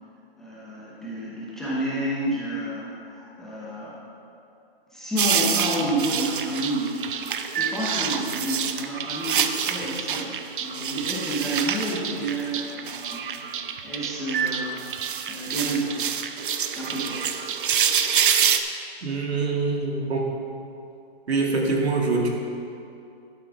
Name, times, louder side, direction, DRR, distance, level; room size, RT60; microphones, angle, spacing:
voice 1, 0.4-4.0 4.9-7.0 7.5-13.3 13.6-16.0 16.7-17.3, right 1 dB, ahead, -8 dB, 0.7 m, -30 dB
sound 1, 5.2-18.6, right 8 dB, 55° right, 0.6 m, -27 dB
voice 2, 19.0-20.3 21.3-22.3, right 3 dB, 90° right, -1 dB, 2.1 m, -24 dB
12.0 x 9.2 x 3.5 m, 2.6 s
hypercardioid pair, 165°, 31 cm